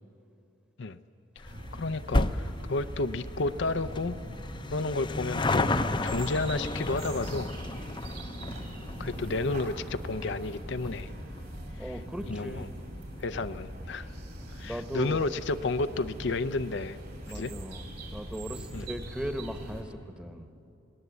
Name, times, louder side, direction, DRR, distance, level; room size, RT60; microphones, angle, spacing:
sound 1, 1.4-14.1 14.4-14.5 15.4-15.5 15.7-15.8 16.1-16.2, left 2 dB, 25° left, 0.7 m, -34 dB
sound 2, 1.5-19.8, right 1 dB, 55° right, 4.5 m, -41 dB
voice 1, 1.7-4.2 4.7-5.7 6.0-7.5 9.0-11.1 11.8-12.0 12.3-12.7 13.2-14.1 14.5-17.0 17.3-17.5 18.7-18.9, left 3 dB, 65° left, 11 dB, 0.6 m, -31 dB
voice 2, 11.8-12.7 14.6-15.3 17.3-20.5, equal, 5° right, 7 dB, 1.2 m, -38 dB
28.0 x 19.0 x 8.2 m, 2.7 s
head